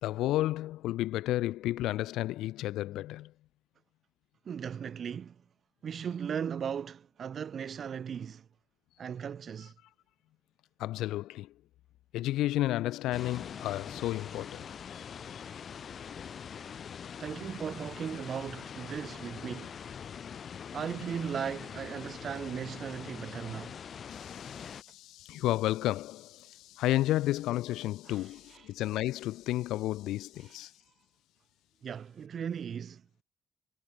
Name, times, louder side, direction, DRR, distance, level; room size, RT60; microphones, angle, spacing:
voice 1, 0.0-3.3 10.8-11.5 12.1-15.1 15.3-15.4 24.1-30.7, left 15 dB, 90° left, 0.7 m, -32 dB
voice 2, 4.4-5.4 5.8-8.4 9.0-9.7 17.2-19.7 20.7-23.8 28.0-28.7 30.4-30.7 31.8-33.0, right 7 dB, 55° right, 1.5 m, -37 dB
sound 1, 13.1-24.8, left 7 dB, 55° left, 0.5 m, -43 dB
cardioid pair, 90°, 0 cm